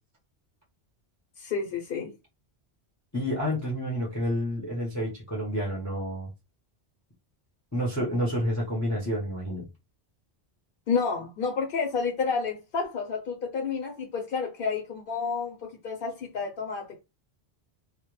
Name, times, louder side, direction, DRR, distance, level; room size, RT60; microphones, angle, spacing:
voice 1, 1.4-2.1 10.9-17.0, left 5 dB, 60° left, 0.7 m, -30 dB
voice 2, 3.1-6.3 7.7-9.7, equal, 20° left, 0.6 m, -29 dB
2.1 x 2.0 x 3.0 m
omnidirectional pair, 1.1 m